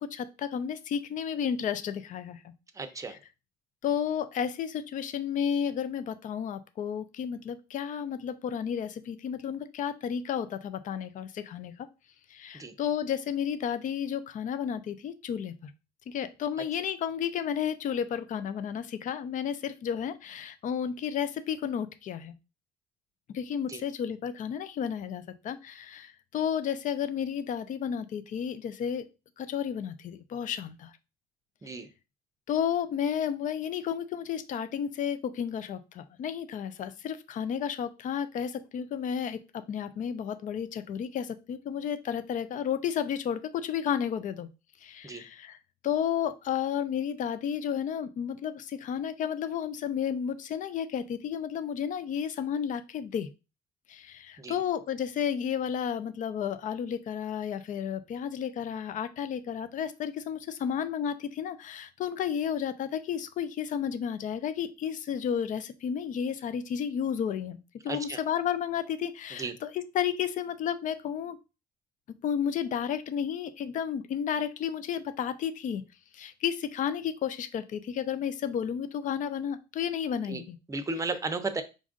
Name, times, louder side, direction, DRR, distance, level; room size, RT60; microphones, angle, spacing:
voice 1, 0.0-2.5 3.1-3.2 3.8-11.9 12.3-15.7 16.1-22.4 23.3-29.1 29.4-30.9 32.5-44.5 44.8-45.6 45.8-53.3 53.9-67.6 67.8-71.4 72.2-75.8 76.1-80.6, left 8 dB, 50° left, 13 dB, 0.5 m, -32 dB
voice 2, 2.7-3.2 12.5-12.7 23.7-23.8 31.6-31.9 45.0-45.2 54.4-54.6 67.9-68.2 69.4-69.5 80.3-80.4 80.7-81.6, right 3 dB, 20° right, 8 dB, 0.7 m, -34 dB
5.2 x 2.4 x 3.6 m, 0.29 s
cardioid pair, 110°, 17 cm